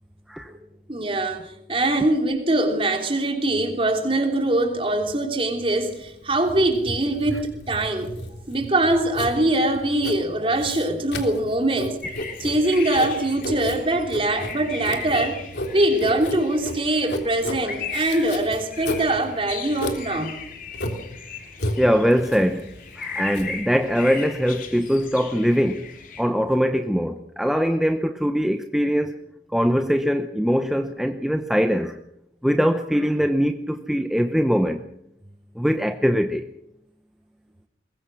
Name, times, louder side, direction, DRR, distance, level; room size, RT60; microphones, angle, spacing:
voice 1, 0.9-8.1 8.5-12.0 12.4-15.4 15.7-20.4, right 1 dB, 30° right, 3.3 m, -23 dB
Writing, 5.8-25.0, left 1 dB, 75° left, 3.4 m, -34 dB
sound 1, 12.0-26.2, left 5 dB, 50° left, 3.1 m, -38 dB
voice 2, 21.8-25.9 26.2-29.2 29.5-32.0 32.4-34.8 35.6-36.5, equal, ahead, 0.8 m, -22 dB
22.0 x 21.5 x 6.3 m
head